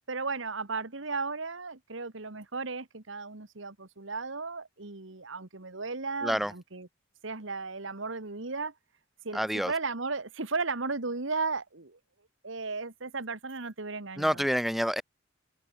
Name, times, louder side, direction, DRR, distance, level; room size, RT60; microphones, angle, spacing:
voice 1, 0.1-6.9 7.2-8.7 9.2-12.0 12.4-14.5, right 4 dB, 70° right, 1.7 m, -35 dB
voice 2, 9.3-9.7 14.2-15.0, equal, ahead, 1.4 m, -27 dB
open air
head